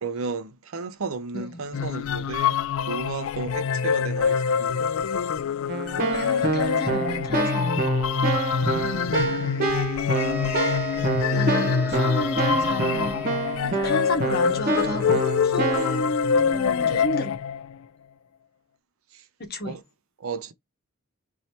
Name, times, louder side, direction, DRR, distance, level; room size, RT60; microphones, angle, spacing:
voice 1, 0.0-4.8 8.8-8.9 11.3-12.1 19.1-19.2 19.6-19.8 20.2-20.5, right 4 dB, 70° right, 0.6 m, -34 dB
sound 1, 1.7-17.8, left 6 dB, 65° left, 0.3 m, -25 dB
Keyboard (musical), 5.7-16.0, right 2 dB, 40° right, 1.3 m, -27 dB
voice 2, 6.1-7.9 11.3-13.2 13.6-17.4 19.5-19.8, left 1 dB, 45° left, 1.2 m, -31 dB
sound 2, 10.1-13.8, left 4 dB, 5° right, 0.8 m, -35 dB
3.2 x 2.8 x 4.2 m
head